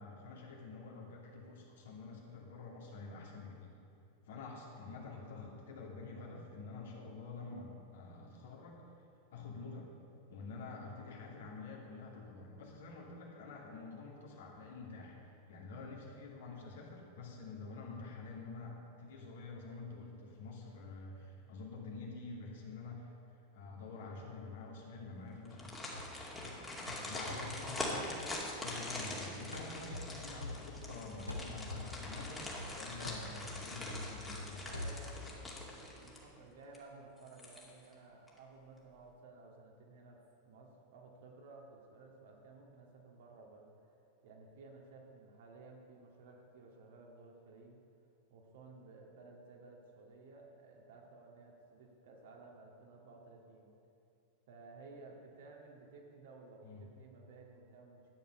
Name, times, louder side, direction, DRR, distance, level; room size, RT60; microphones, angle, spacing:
voice 1, 0.0-3.8 4.3-8.8 9.3-9.9 10.3-23.1 23.5-25.7 26.4-28.3 28.6-32.5 32.8-34.7 56.6-56.8, left 3 dB, 60° left, -2 dB, 2.5 m, -48 dB
sound 1, 25.4-36.4 36.7-36.8 37.3-37.9 38.3-38.4, left 1 dB, 10° left, 2.4 m, -44 dB
sound 2, 25.9-29.2 29.5-31.0 31.3-35.4, left 2 dB, 85° left, 1.2 m, -46 dB
voice 2, 34.6-40.2 40.5-43.9 44.2-47.8 48.3-53.7 54.5-58.1, right 3 dB, 55° right, 0 dB, 2.0 m, -56 dB
12.5 x 9.4 x 5.5 m, 2.6 s
figure-of-eight pair, 90°, 0 cm